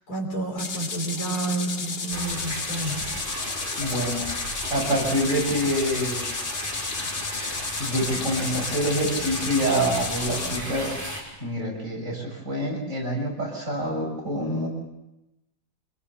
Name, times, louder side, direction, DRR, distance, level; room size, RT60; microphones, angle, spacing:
voice 1, 0.1-3.2, right 2 dB, 55° left, 3 dB, 4.1 m, -30 dB
sound 1, 0.6-10.6, left 4 dB, 35° left, 1.3 m, -32 dB
sound 2, 2.1-11.2, equal, 10° left, 5.2 m, -34 dB
voice 2, 3.8-4.2 4.7-6.2 7.8-10.9 11.4-14.7, equal, 40° right, -1 dB, 7.3 m, -26 dB
26.5 x 21.0 x 7.3 m, 0.92 s
omnidirectional pair, 2.0 m